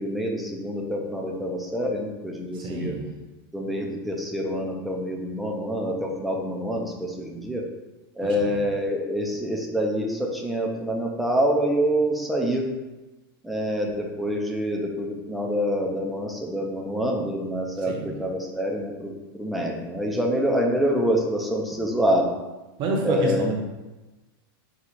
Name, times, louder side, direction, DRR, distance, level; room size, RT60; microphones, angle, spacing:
voice 1, 0.0-2.9 3.5-7.6 8.2-12.6 13.4-19.1 19.4-22.3 23.0-23.4, equal, ahead, -1 dB, 0.6 m, -26 dB
voice 2, 2.5-3.0 8.2-8.6 17.8-18.1 22.8-23.5, right 3 dB, 40° right, 1 dB, 1.0 m, -28 dB
4.6 x 2.4 x 4.1 m, 1.1 s
supercardioid pair, 130°, 12 cm